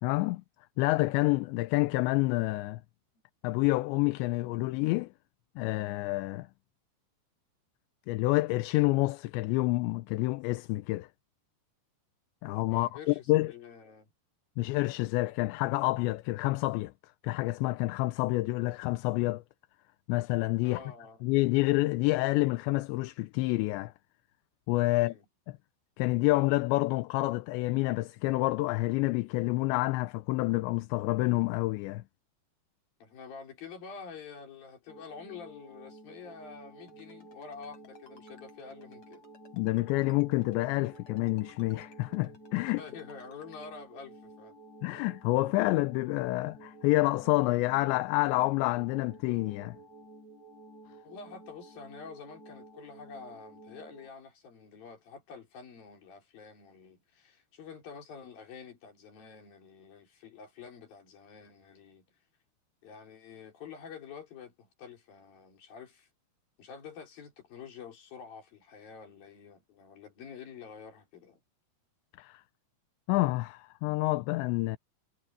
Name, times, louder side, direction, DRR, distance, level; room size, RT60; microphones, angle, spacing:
voice 1, 0.0-0.4 0.8-2.8 3.4-5.1 5.6-6.5 8.1-11.1 12.4-13.5 14.6-16.9 17.2-19.4 20.1-20.8 21.2-23.9 24.7-25.2 26.0-32.0 39.5-42.8 44.8-49.8 72.2-72.4 73.1-74.8, left 20 dB, 80° left, 2.8 m, -28 dB
voice 2, 12.7-14.1 20.6-21.2 24.9-25.2 33.0-39.2 42.6-44.6 51.0-62.1 62.8-66.1 66.6-71.4, left 6 dB, 50° left, 5.6 m, -48 dB
sound 1, 34.9-54.1, right 2 dB, 60° right, 8.8 m, -52 dB
Ringtone, 36.9-43.7, left 4 dB, 35° left, 5.5 m, -59 dB
omnidirectional pair, 5.4 m